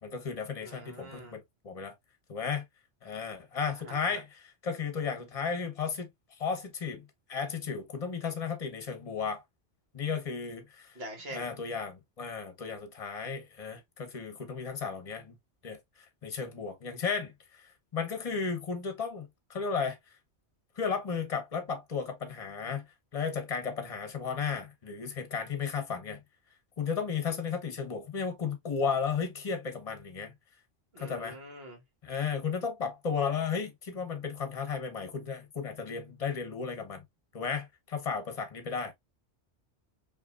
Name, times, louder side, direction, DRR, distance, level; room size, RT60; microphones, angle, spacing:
voice 1, 0.0-1.9 2.3-2.6 3.0-6.1 6.4-9.4 9.9-11.0 11.3-15.3 15.6-15.8 16.2-20.0 20.8-22.9 23.1-26.2 26.8-30.3 31.0-31.4 32.0-37.0 37.3-38.9, left 6 dB, 35° left, 1.0 m, -34 dB
voice 2, 0.6-1.4 3.7-4.2 10.9-11.5 30.9-31.8, right 1 dB, 60° right, 1.6 m, -45 dB
5.1 x 2.8 x 2.4 m
omnidirectional pair, 1.2 m